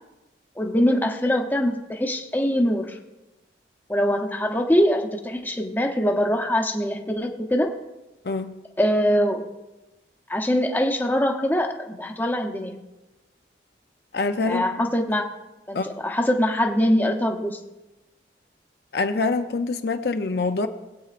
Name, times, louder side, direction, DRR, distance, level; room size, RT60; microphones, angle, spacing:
voice 1, 0.6-3.0 3.9-7.7 8.8-9.4 10.3-12.8 14.4-15.2 15.7-17.6, equal, 10° left, 0.7 m, -23 dB
voice 2, 14.1-14.6 15.7-15.9 18.9-20.7, left 3 dB, 60° left, 0.6 m, -25 dB
20.0 x 8.5 x 2.5 m
head